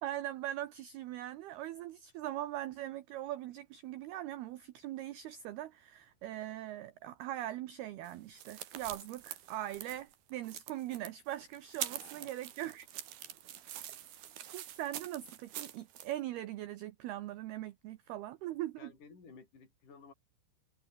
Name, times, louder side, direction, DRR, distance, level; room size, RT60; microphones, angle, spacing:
voice 1, 0.0-12.9 14.5-18.9, right 13 dB, 85° right, 2.2 m, -41 dB
sound 1, 8.0-16.1, right 11 dB, 60° right, 3.2 m, -45 dB
voice 2, 18.8-20.1, left 5 dB, 40° left, 8.0 m, -55 dB
omnidirectional pair, 5.8 m